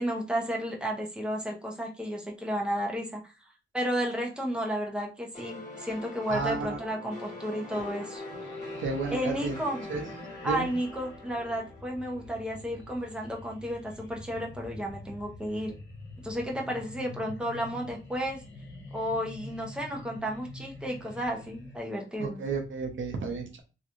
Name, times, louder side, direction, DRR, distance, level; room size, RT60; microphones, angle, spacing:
voice 1, 0.0-3.3 3.7-8.2 9.1-9.8 10.4-15.7 16.2-18.4 18.9-22.4, equal, 5° right, -1 dB, 0.8 m, -32 dB
sound 1, 5.3-12.8, left 2 dB, 35° left, 1.6 m, -43 dB
voice 2, 6.3-6.8 8.8-9.6 9.9-10.0 10.4-10.7 22.2-23.6, right 4 dB, 80° right, 3 dB, 0.8 m, -32 dB
sound 2, 8.3-21.8, left 2 dB, 70° left, 1.0 m, -47 dB
3.0 x 3.0 x 2.5 m, 0.31 s
wide cardioid pair, 105°, 20 cm